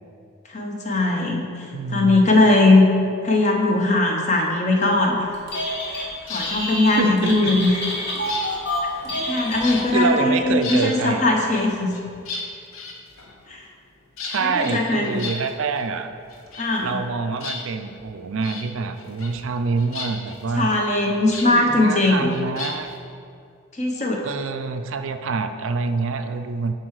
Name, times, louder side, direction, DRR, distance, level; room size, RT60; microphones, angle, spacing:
voice 1, 0.5-2.8 3.2-5.3 5.9-7.7 9.3-11.9 13.5-13.6 14.4-15.3 16.6-17.0 20.5-22.4 23.7-24.2, left 2 dB, 30° left, 1 dB, 0.8 m, -20 dB
voice 2, 1.7-2.2 7.0-7.5 9.9-11.4 14.2-16.1 16.8-20.7 21.4-22.9 24.2-26.7, right 4 dB, 60° right, 8 dB, 0.4 m, -26 dB
Telephone, 5.3-6.1 6.4-10.1, left 1 dB, 50° left, 1.9 m, -28 dB
Bird cage, 6.2-6.6 7.5-9.3 9.6-10.1 10.4-10.9 11.5-13.5 14.2-15.9 16.1-17.1 17.4-18.0 18.4-18.7 19.0-19.5 19.8-21.5 22.3-23.0, left 4 dB, 70° left, 0.9 m, -34 dB
9.8 x 4.6 x 4.8 m, 2.4 s
head